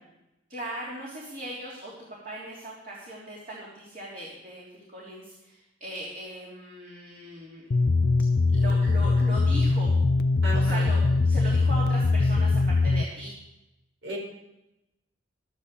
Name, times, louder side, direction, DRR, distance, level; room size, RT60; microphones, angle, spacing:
voice 1, 0.5-1.9 2.2-7.7 8.5-9.9 10.5-13.3, right 1 dB, 45° right, -5 dB, 3.2 m, -39 dB
sound 1, 7.7-13.0, left 3 dB, 55° left, 0.6 m, -22 dB
voice 2, 10.4-10.8 14.0-14.2, right 2 dB, 85° right, 0 dB, 4.9 m, -34 dB
13.0 x 10.0 x 6.8 m, 0.92 s
head